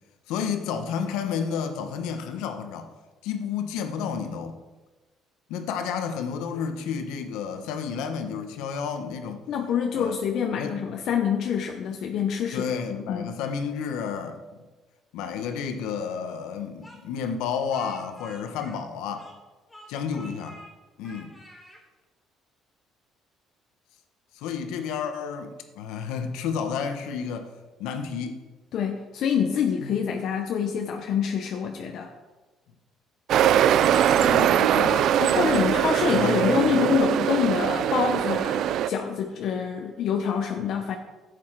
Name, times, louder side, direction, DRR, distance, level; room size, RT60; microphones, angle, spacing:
voice 1, 0.3-2.9 3.2-4.6 5.5-9.4 9.9-10.1 10.5-10.8 12.5-14.6 15.1-19.3 19.9-20.6 21.0-21.3 24.3-27.5 27.8-28.4 29.8-29.9 33.4-35.8 36.1-36.8, left 6 dB, 90° left, 6 dB, 1.3 m, -31 dB
voice 2, 9.5-13.3 28.7-32.1 35.2-41.0, left 7 dB, 60° left, 3 dB, 1.0 m, -26 dB
Speech, 16.8-19.4 19.7-20.7 21.0-21.8, equal, 5° left, 3.8 m, -48 dB
sound 1, 33.3-38.9, right 10 dB, 65° right, 0.4 m, -21 dB
12.0 x 8.3 x 4.8 m, 1.2 s
cardioid pair, 120°, 0 cm